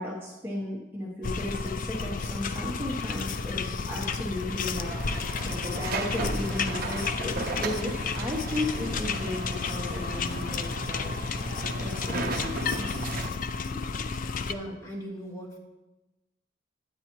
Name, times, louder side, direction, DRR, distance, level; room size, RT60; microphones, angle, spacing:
voice 1, 0.0-11.1 11.8-13.2 13.7-13.9, left 1 dB, 10° right, -3 dB, 1.0 m, -35 dB
sound 1, 1.2-14.5, left 5 dB, 45° left, 0.4 m, -32 dB
sound 2, 4.9-13.3, right 3 dB, 50° right, 0.6 m, -36 dB
voice 2, 14.4-15.6, equal, 15° left, -3 dB, 1.8 m, -39 dB
9.5 x 8.9 x 3.0 m, 1.0 s
head